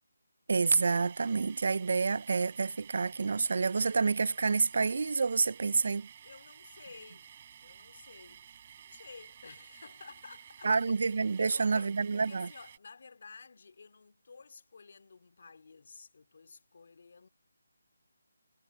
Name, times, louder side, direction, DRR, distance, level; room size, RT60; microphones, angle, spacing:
voice 1, 0.5-6.1 10.6-12.5, right 4 dB, 55° right, 0.4 m, -28 dB
sound 1, 0.6-12.8, right 9 dB, 30° right, 7.0 m, -54 dB
voice 2, 6.2-8.5 8.8-10.8 11.4-17.3, left 4 dB, 55° left, 2.4 m, -53 dB
figure-of-eight pair, 170°, 0 cm